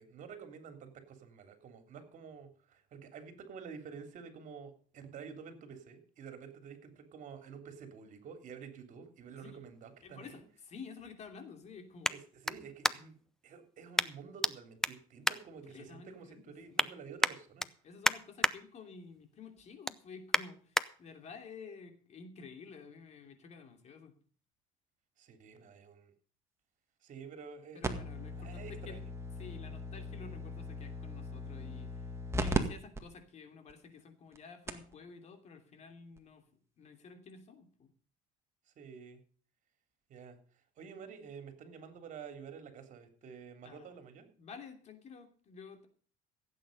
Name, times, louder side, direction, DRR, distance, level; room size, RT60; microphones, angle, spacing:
voice 1, 0.0-10.4 12.1-13.1 13.4-17.7 25.2-26.1 27.0-27.8 28.4-29.0 38.8-39.2 40.1-40.4 40.8-44.3, right 6 dB, 55° right, 7 dB, 3.4 m, -49 dB
sound 1, 9.2-13.3 13.9-14.5 14.8-16.1 16.5-16.9 17.2-18.5 19.0-19.2 19.6-20.9 21.4-21.5, left 1 dB, 5° left, 0.6 m, -33 dB
voice 2, 10.0-12.1 15.3-15.4 15.6-16.4 16.7-16.9 17.8-24.1 27.7-29.0 29.4-32.0 32.4-36.4 36.8-37.9 43.6-43.9 44.4-45.9, left 5 dB, 45° left, 6 dB, 3.0 m, -51 dB
sound 2, 27.8-32.6 33.0-33.1 33.7-33.8 34.4-34.5 34.7-34.9 36.2-36.3, right 1 dB, 15° right, 1.9 m, -38 dB
16.0 x 8.6 x 5.4 m, 0.43 s
cardioid pair, 115°, 16 cm